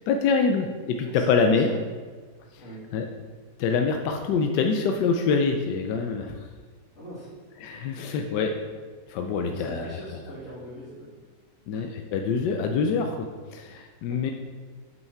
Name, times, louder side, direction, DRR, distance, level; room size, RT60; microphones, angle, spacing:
voice 1, 0.1-1.7 2.9-3.0 3.6-6.5 7.6-8.6 9.1-10.0 11.7-14.3, left 5 dB, 75° left, 4 dB, 1.2 m, -25 dB
voice 2, 1.1-1.6 2.6-2.9 6.9-7.3 7.9-8.1 8.6-8.7 9.4-11.3 11.7-11.8 14.0-14.2, right 1 dB, 45° left, -12 dB, 2.6 m, -42 dB
8.3 x 5.6 x 4.5 m, 1.5 s
omnidirectional pair, 1.9 m